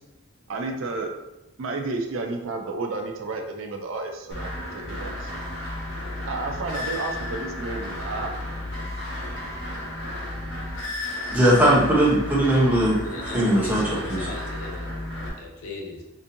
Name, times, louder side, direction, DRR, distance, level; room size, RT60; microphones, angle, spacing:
voice 1, 0.5-1.1 1.6-5.3 6.2-8.3, right 3 dB, 65° right, 3 dB, 0.5 m, -31 dB
sound 1, 4.3-15.3, left 1 dB, 55° left, 1.0 m, -33 dB
voice 2, 11.3-14.3, right 1 dB, 10° right, -6 dB, 0.8 m, -20 dB
voice 3, 13.0-14.9 15.4-16.0, left 3 dB, 80° left, 0 dB, 0.7 m, -37 dB
3.9 x 2.6 x 2.6 m, 0.93 s
head